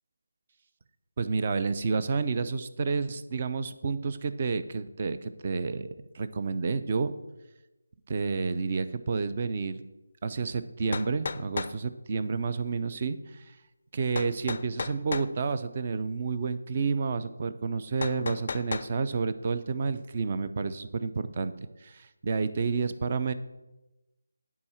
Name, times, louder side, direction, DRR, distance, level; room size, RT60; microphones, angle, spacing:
voice 1, 1.2-7.1 8.1-9.8 10.2-13.6 13.9-21.5 21.8-23.3, right 4 dB, 35° right, 11 dB, 0.6 m, -30 dB
sound 1, 10.4-10.5 10.9-11.8 14.2-15.3 18.0-18.9, left 4 dB, 45° left, 0.4 m, -34 dB
9.7 x 4.9 x 7.2 m, 1.0 s
figure-of-eight pair, 160°, 0 cm